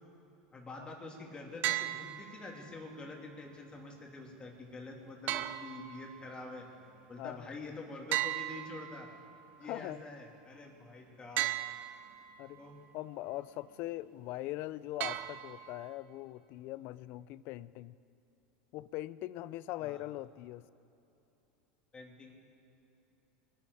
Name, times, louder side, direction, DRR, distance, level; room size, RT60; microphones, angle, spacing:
voice 1, 0.5-6.6 7.1-9.1 9.6-11.5 12.6-12.8 19.8-20.0 21.9-22.3, left 2 dB, 25° left, 0 dB, 3.0 m, -46 dB
sound 1, 1.6-2.6 5.3-6.4 8.1-9.3 11.4-12.3 15.0-15.9, right 14 dB, 50° right, 0.7 m, -36 dB
voice 2, 9.6-10.0 12.4-12.6 12.9-18.0 18.7-20.7, left 16 dB, 55° left, 18 dB, 0.5 m, -41 dB
23.0 x 10.5 x 4.9 m, 2.9 s
supercardioid pair, 105°, 4 cm